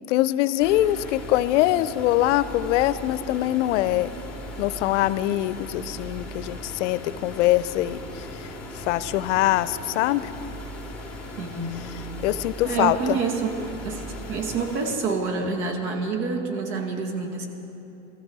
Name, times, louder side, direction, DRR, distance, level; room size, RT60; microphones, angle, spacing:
voice 1, 0.1-4.1 4.6-8.0 8.8-10.3 12.2-13.2, left 15 dB, 70° left, 15 dB, 0.6 m, -23 dB
sound 1, 0.6-15.0, left 1 dB, 10° right, 3.1 m, -38 dB
voice 2, 11.4-11.9 12.6-17.5, right 4 dB, 60° right, 3 dB, 2.1 m, -28 dB
20.0 x 14.0 x 4.8 m, 3.0 s
supercardioid pair, 140°, 38 cm